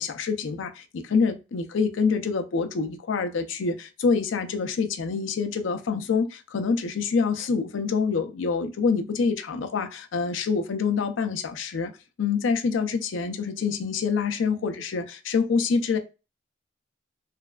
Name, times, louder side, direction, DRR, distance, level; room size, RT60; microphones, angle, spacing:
voice 1, 0.0-11.9 12.2-16.0, left 5 dB, 90° left, 0.4 m, -26 dB
3.2 x 2.2 x 2.3 m
head